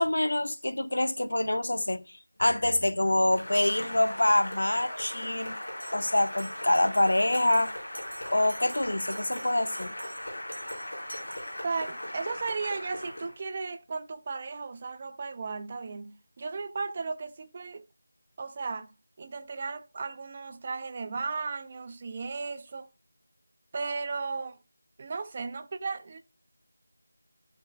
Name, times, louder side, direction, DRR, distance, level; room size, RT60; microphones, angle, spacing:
voice 1, 0.0-2.0 2.4-5.6 5.9-7.7 8.3-9.9, left 1 dB, 70° left, 0.8 m, -25 dB
Cheering / Applause, 3.3-13.4, left 1 dB, 55° left, 4.5 m, -38 dB
Bell, 5.8-12.0, right 1 dB, 65° right, 1.8 m, -49 dB
voice 2, 11.6-17.8 18.4-18.9 19.2-22.9 23.7-24.6 25.0-26.2, right 4 dB, 15° right, 0.3 m, -35 dB
14.0 x 4.7 x 2.2 m
figure-of-eight pair, 180°, 0 cm